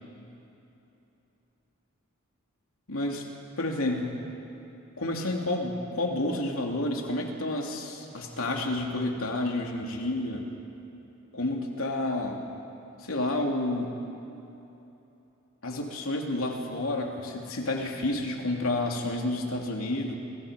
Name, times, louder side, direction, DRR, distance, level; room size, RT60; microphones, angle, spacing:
voice 1, 2.9-3.3 3.6-4.2 5.0-10.4 11.3-12.4 13.0-13.9 15.6-20.1, left 2 dB, 85° left, 1 dB, 3.1 m, -30 dB
28.5 x 28.5 x 5.3 m, 2.9 s
head